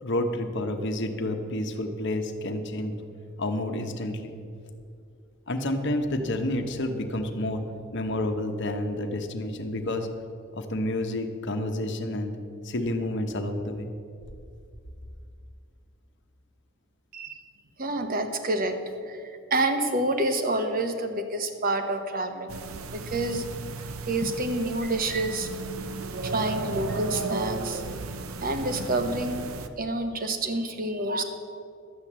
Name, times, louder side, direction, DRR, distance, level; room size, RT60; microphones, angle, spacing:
voice 1, 0.0-3.0 3.4-4.3 5.5-7.6 7.9-10.1 10.5-12.3 12.6-13.9, left 1 dB, 55° left, 6 dB, 1.1 m, -29 dB
voice 2, 17.1-17.4 17.8-22.5 22.9-23.5 24.1-25.5 26.2-27.8 28.4-31.2, right 2 dB, 45° right, 7 dB, 1.2 m, -28 dB
sound 1, 22.5-29.7, right 3 dB, 85° right, 0.8 m, -34 dB
12.0 x 8.5 x 7.4 m, 2.4 s
head